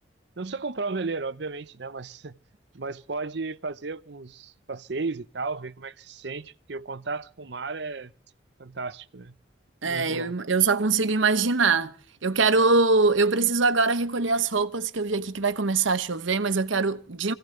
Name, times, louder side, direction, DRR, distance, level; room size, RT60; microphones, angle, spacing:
voice 1, 0.4-2.4 2.7-8.1 8.6-9.4 9.8-10.3, right 3 dB, 60° right, 0.7 m, -34 dB
voice 2, 9.8-11.9 12.2-17.3, right 4 dB, 85° right, 1.0 m, -23 dB
25.5 x 16.0 x 3.2 m
head